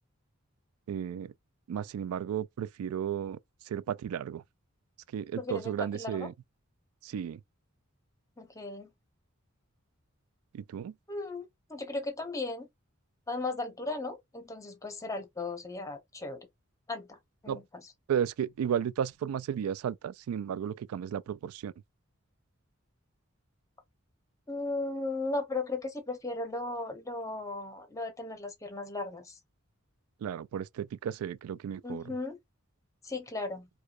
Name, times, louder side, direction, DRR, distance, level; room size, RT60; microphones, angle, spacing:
voice 1, 0.9-1.3 1.7-3.4 3.7-4.4 5.1-6.3 7.0-7.4 10.5-10.9 17.5-17.6 18.1-21.7 30.2-32.1, right 8 dB, 85° right, 0.3 m, -34 dB
voice 2, 5.4-6.3 8.4-8.9 11.1-12.7 13.3-16.5 16.9-17.2 17.4-17.6 24.5-29.4 31.8-32.4 33.0-33.7, left 2 dB, 15° left, 0.8 m, -36 dB
4.6 x 2.2 x 2.4 m
head